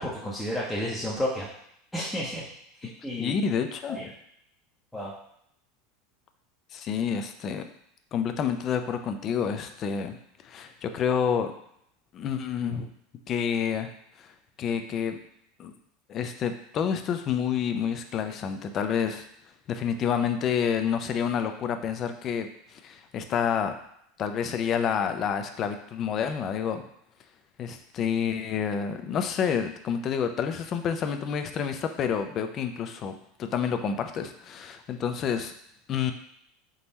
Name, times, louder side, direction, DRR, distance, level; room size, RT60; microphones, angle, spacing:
voice 1, 0.0-1.5 1.9-2.5 2.8-3.4 3.9-4.1 4.9-5.1, equal, 5° left, -7 dB, 0.7 m, -31 dB
voice 2, 3.2-4.1 6.7-7.6 8.1-10.2 10.4-11.5 12.1-12.9 13.3-13.9 14.2-14.3 14.6-15.2 15.6-15.7 16.1-19.3 19.7-23.8 24.2-26.8 27.6-35.5 35.9-36.1, left 7 dB, 35° left, 7 dB, 0.4 m, -28 dB
3.7 x 2.9 x 4.1 m, 0.72 s
supercardioid pair, 140°, 0 cm